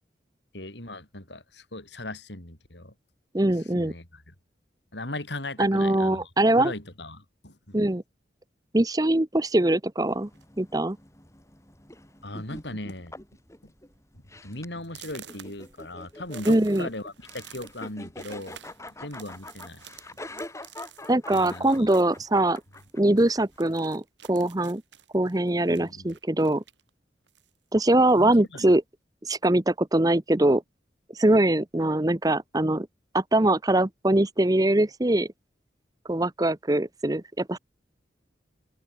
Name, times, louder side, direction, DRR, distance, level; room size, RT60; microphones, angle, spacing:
voice 1, 0.5-2.9 3.7-4.3 4.9-6.3 6.6-7.8 12.2-13.1 14.4-18.6 19.0-19.8 21.3-21.9 25.7-26.1 28.2-28.7, left 2 dB, 75° left, 6.7 m, -38 dB
voice 2, 3.3-3.9 5.6-6.7 7.7-8.0 8.7-10.3 10.6-11.0 16.5-16.9 21.1-22.6 22.9-24.0 24.3-24.8 25.1-26.6 27.7-28.8 29.2-30.6 31.1-32.9 33.1-35.3 36.1-37.6, right 1 dB, 20° right, 0.8 m, -22 dB
sound 1, 10.0-23.6, left 1 dB, 15° left, 4.0 m, -44 dB
sound 2, 10.3-10.7 11.5-11.6 12.0-12.2 12.5-13.0 13.4-13.5 14.0-14.1 14.8-22.9 23.2-26.9 27.3-28.3, right 9 dB, 85° right, 4.1 m, -50 dB
open air
head